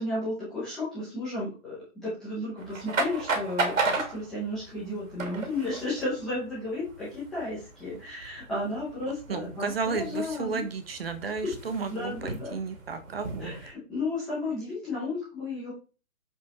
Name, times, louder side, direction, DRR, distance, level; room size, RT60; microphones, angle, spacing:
voice 1, 0.0-10.6 11.9-12.6 13.4-15.7, left 2 dB, ahead, -13 dB, 0.8 m, -33 dB
sound 1, 2.6-13.7, right 3 dB, 60° right, 2.9 m, -35 dB
voice 2, 9.3-13.5, right 4 dB, 40° right, 9 dB, 1.4 m, -33 dB
7.4 x 6.8 x 4.3 m, 0.35 s
hypercardioid pair, 170°, 45 cm